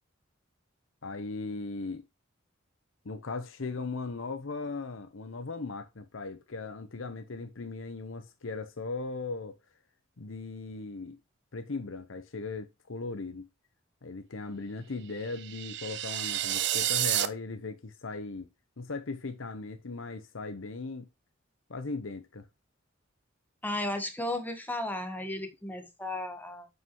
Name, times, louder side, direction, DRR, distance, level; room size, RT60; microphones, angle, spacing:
voice 1, 1.0-2.0 3.0-9.6 10.2-11.2 11.5-13.5 14.0-18.5 18.8-21.1 21.7-22.5, left 3 dB, 80° left, 0.9 m, -38 dB
sound 1, 15.2-17.3, right 12 dB, 60° right, 0.6 m, -30 dB
voice 2, 23.6-26.7, left 1 dB, 10° left, 1.5 m, -34 dB
8.1 x 5.7 x 3.0 m
head